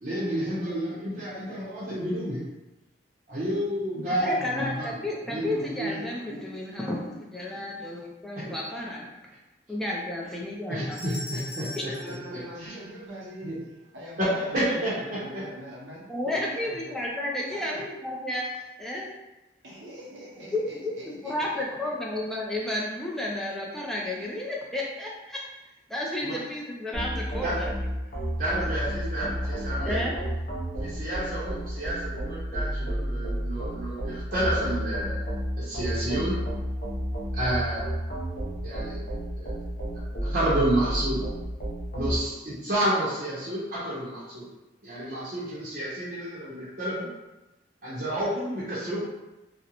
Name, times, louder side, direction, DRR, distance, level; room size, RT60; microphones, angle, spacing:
voice 1, 0.0-2.4 3.3-4.9 5.3-6.0 8.4-8.5 10.7-11.9 12.3-12.7 13.4-13.5 14.2-15.4 26.2-26.4 27.4-27.5 28.4-30.0 30.8-35.2 35.6-36.4 37.3-37.9 38.6-39.0 39.4-39.5 39.9-41.2 41.9-44.5 44.8-47.1 47.8-49.0, right 1 dB, 50° right, -9 dB, 0.6 m, -30 dB
voice 2, 4.2-9.1 9.7-11.0 16.1-19.1 20.5-25.4 25.9-27.7 28.6-28.7 29.2-29.3 29.8-30.2, left 1 dB, ahead, -4 dB, 0.3 m, -32 dB
sound 1, 10.9-13.3, left 1 dB, 80° left, 1.0 m, -42 dB
voice 3, 12.0-13.6 13.9-16.0 16.6-17.0 17.5-17.8 19.6-21.9, right 1 dB, 90° right, -5 dB, 0.7 m, -43 dB
sound 2, 26.9-42.2, equal, 50° left, 0.6 m, -31 dB
2.4 x 2.0 x 2.8 m, 1.0 s
head